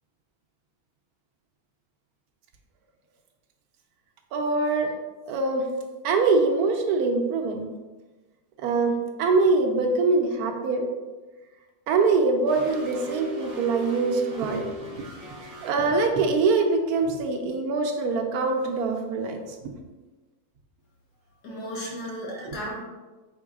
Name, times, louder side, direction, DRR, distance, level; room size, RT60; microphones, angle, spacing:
voice 1, 4.3-4.9 5.3-5.7 6.0-7.6 8.6-8.9 9.2-10.9 11.9-15.1 15.6-19.7 21.8-21.9 22.3-22.6, right 3 dB, 75° right, 3 dB, 1.1 m, -24 dB
sound 1, 12.5-15.7, left 1 dB, 50° right, 0.4 m, -37 dB
voice 2, 21.4-22.8, equal, 85° left, -4 dB, 1.5 m, -34 dB
5.3 x 3.6 x 2.3 m, 1.2 s
omnidirectional pair, 1.7 m